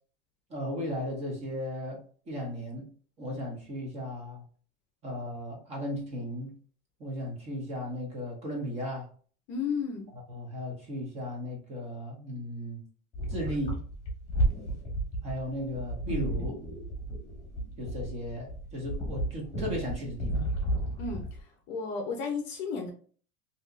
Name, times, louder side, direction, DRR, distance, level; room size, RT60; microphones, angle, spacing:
voice 1, 0.5-2.9 3.2-4.4 5.0-6.5 7.0-9.1 10.3-12.8 13.3-13.8 15.2-16.6 17.8-20.5, equal, 20° right, 0.8 m, -36 dB
voice 2, 9.5-10.1 21.0-21.4 21.7-22.9, left 5 dB, 35° left, 0.6 m, -33 dB
sound 1, 13.1-21.4, right 1 dB, 20° left, 1.2 m, -32 dB
3.4 x 2.8 x 2.5 m
supercardioid pair, 170°, 32 cm